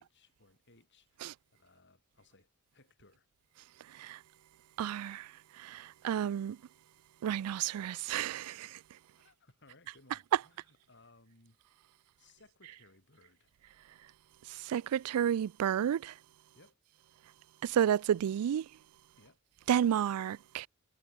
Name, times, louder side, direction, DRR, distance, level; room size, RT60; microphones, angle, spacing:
voice 1, 0.0-3.3 9.2-11.6 12.2-13.5 16.5-16.8 19.2-19.4, left 2 dB, 55° left, 6.7 m, -63 dB
voice 2, 4.8-5.3 5.6-6.6 7.2-8.8 14.5-16.1 17.6-18.7 19.7-20.7, right 9 dB, 80° right, 0.3 m, -31 dB
head